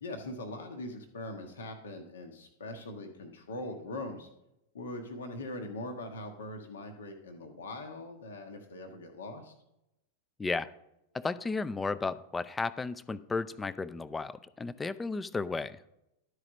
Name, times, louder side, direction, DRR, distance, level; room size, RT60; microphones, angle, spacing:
voice 1, 0.0-4.3 4.7-9.5, left 2 dB, 65° left, 4 dB, 1.1 m, -41 dB
voice 2, 10.4-10.7 11.1-15.8, left 4 dB, 15° left, 16 dB, 0.4 m, -34 dB
11.5 x 4.8 x 6.2 m, 0.85 s
figure-of-eight pair, 90°, 0 cm